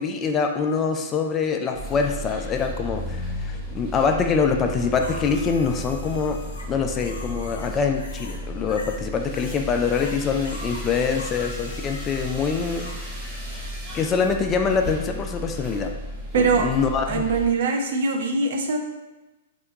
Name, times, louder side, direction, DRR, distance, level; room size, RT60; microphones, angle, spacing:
voice 1, 0.0-6.4 6.7-13.6 13.9-15.9 16.3-17.2, left 5 dB, 25° left, 4 dB, 0.3 m, -25 dB
sound 1, 1.7-17.5, equal, 10° right, 0.9 m, -34 dB
sound 2, 5.0-8.4 8.7-9.6 9.9-13.0 16.5-16.6, left 2 dB, 85° left, 0.6 m, -42 dB
voice 2, 16.3-16.7 17.1-18.8, right 4 dB, 65° right, 3 dB, 0.5 m, -22 dB
2.8 x 2.2 x 3.6 m, 1.1 s
hypercardioid pair, 130°, 0 cm